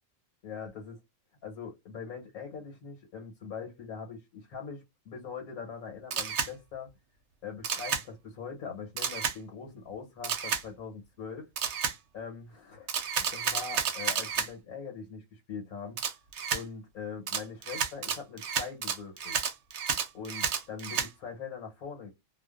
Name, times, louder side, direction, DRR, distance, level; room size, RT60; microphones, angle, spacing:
voice 1, 0.4-0.9 1.4-6.9 7.4-11.5 12.1-16.0 16.5-19.4 20.1-22.1, left 6 dB, 80° left, 1.3 m, -42 dB
Camera, 6.1-6.5 7.6-8.0 9.0-9.4 10.2-10.6 11.6-12.0 12.9-14.5 16.0-16.6 17.3-21.1, right 7 dB, 60° right, 0.8 m, -31 dB
2.5 x 2.4 x 2.3 m
omnidirectional pair, 1.5 m